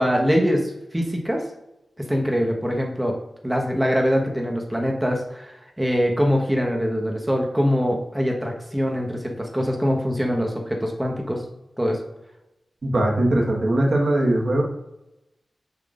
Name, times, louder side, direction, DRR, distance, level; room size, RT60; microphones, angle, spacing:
voice 1, 0.0-1.4 2.0-3.2 3.4-11.4 11.8-12.0, equal, 10° right, 1 dB, 1.2 m, -23 dB
voice 2, 12.8-14.6, right 1 dB, 55° right, 0 dB, 1.4 m, -20 dB
6.9 x 6.0 x 2.5 m, 0.93 s
wide cardioid pair, 95°, 0 cm